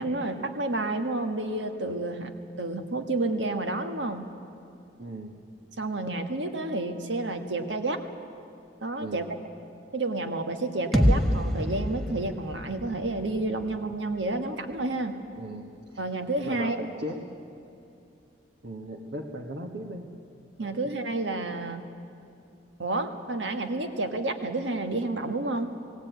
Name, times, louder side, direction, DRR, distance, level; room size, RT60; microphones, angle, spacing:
voice 1, 0.0-2.3 2.6-4.3 5.8-8.0 8.8-9.4 9.9-15.1 16.0-16.8 20.6-21.8 22.8-25.7, right 2 dB, 90° right, 6 dB, 1.6 m, -30 dB
voice 2, 5.0-5.4 9.0-9.3 15.4-16.0 16.4-17.2 18.6-20.1 20.6-20.9, right 1 dB, 70° right, 2 dB, 1.6 m, -37 dB
sound 1, 10.9-14.8, equal, ahead, 1.3 m, -28 dB
19.0 x 17.0 x 9.3 m, 2.7 s
head